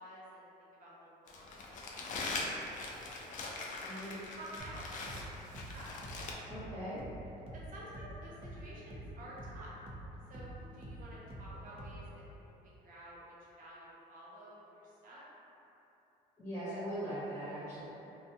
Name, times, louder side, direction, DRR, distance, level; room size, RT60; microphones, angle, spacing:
voice 1, 0.0-2.3 2.7-3.3 3.7-5.9 7.7-9.7 10.3-15.2, right 1 dB, 50° right, -7 dB, 0.8 m, -52 dB
Crumpling crinkling, 1.3-6.3, left 3 dB, 50° left, 0.4 m, -42 dB
sound 1, 4.6-12.3, right 1 dB, 35° right, 0.4 m, -48 dB
voice 2, 6.5-7.0 16.4-17.8, equal, 10° left, -14 dB, 0.9 m, -40 dB
2.5 x 2.2 x 2.8 m, 2.9 s
cardioid pair, 110°, 17 cm